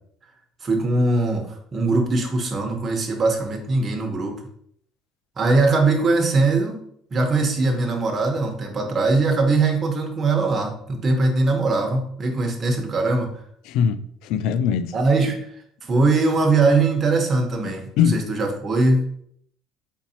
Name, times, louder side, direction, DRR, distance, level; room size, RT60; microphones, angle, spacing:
voice 1, 0.6-4.3 5.4-6.8 7.1-13.3 14.9-15.4 15.8-19.0, right 3 dB, 30° right, 1.0 m, -21 dB
voice 2, 13.7-15.0 18.0-18.2, left 7 dB, 75° left, 0.3 m, -21 dB
4.5 x 4.0 x 2.8 m
cardioid pair, 125°, 0 cm